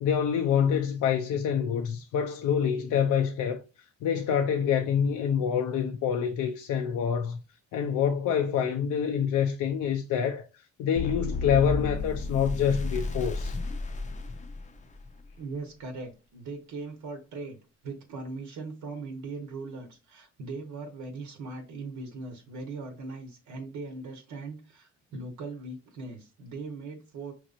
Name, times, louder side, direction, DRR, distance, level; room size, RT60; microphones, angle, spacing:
voice 1, 0.0-3.6 4.0-7.4 7.7-10.4 10.8-13.6, left 8 dB, 80° left, 0.5 m, -26 dB
sound 1, 11.0-15.1, left 3 dB, 25° left, 0.5 m, -32 dB
voice 2, 15.4-17.6 17.8-27.3, right 3 dB, 75° right, 1.1 m, -39 dB
5.1 x 3.1 x 2.4 m
cardioid pair, 90°, 30 cm